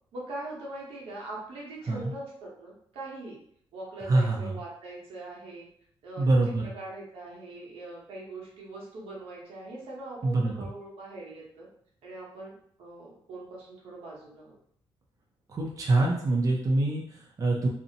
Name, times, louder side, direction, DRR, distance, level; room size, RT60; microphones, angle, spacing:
voice 1, 0.1-3.4 3.7-5.7 6.0-6.3 6.7-11.7 12.0-12.5 12.8-14.5, right 2 dB, 85° right, -4 dB, 0.9 m, -41 dB
voice 2, 4.0-4.6 6.2-6.7 10.2-10.7 15.5-17.7, right 2 dB, 35° right, -1 dB, 0.5 m, -25 dB
2.6 x 2.1 x 2.7 m, 0.65 s
cardioid pair, 110°, 10 cm